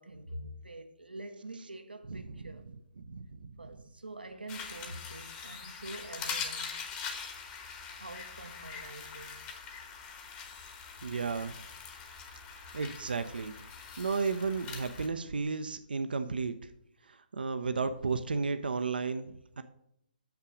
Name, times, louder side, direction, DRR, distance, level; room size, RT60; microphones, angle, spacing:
voice 1, 0.0-2.6 3.6-6.7 7.9-9.6, right 1 dB, 90° right, 0.9 m, -46 dB
voice 2, 3.0-3.5 11.0-11.6 12.7-13.5 14.0-16.5 17.3-19.6, right 4 dB, 70° right, 0.6 m, -33 dB
sound 1, 4.5-15.1, left 6 dB, 25° left, 1.1 m, -43 dB
6.7 x 5.8 x 5.0 m
figure-of-eight pair, 140°, 5 cm